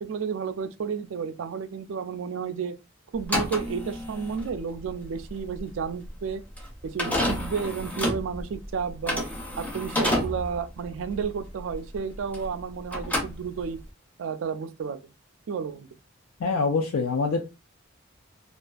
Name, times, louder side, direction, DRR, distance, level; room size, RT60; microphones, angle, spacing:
voice 1, 0.0-2.8 3.1-6.4 6.8-9.3 9.6-13.8 14.2-15.0 15.5-15.9, right 6 dB, 70° right, 0.3 m, -32 dB
sound 1, 3.2-12.6 12.9-13.9, left 1 dB, 10° left, 0.4 m, -30 dB
voice 2, 16.4-17.4, left 4 dB, 90° left, 0.4 m, -24 dB
2.5 x 2.4 x 2.3 m
head